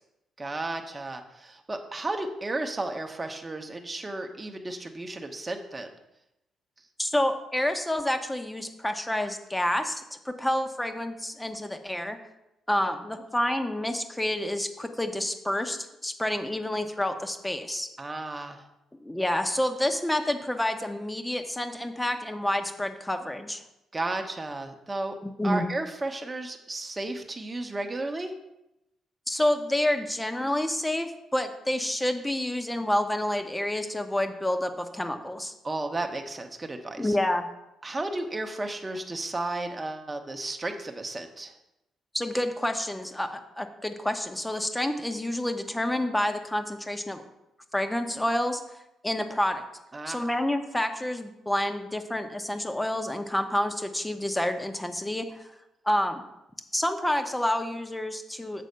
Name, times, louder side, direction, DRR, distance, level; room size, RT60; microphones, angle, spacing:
voice 1, 0.4-5.9 12.8-12.9 18.0-18.6 23.9-25.2 25.4-28.3 35.6-37.2 37.8-41.5 49.9-50.3, right 2 dB, 20° right, 5 dB, 1.0 m, -33 dB
voice 2, 7.0-12.2 12.7-17.9 19.0-23.6 25.2-25.7 29.3-35.5 37.0-37.5 42.1-47.2 47.7-48.6 49.0-49.6 50.1-55.4 55.9-56.2 56.7-58.6, left 1 dB, 10° left, 6 dB, 0.9 m, -28 dB
7.8 x 4.1 x 6.7 m, 0.89 s
cardioid pair, 90°, 0 cm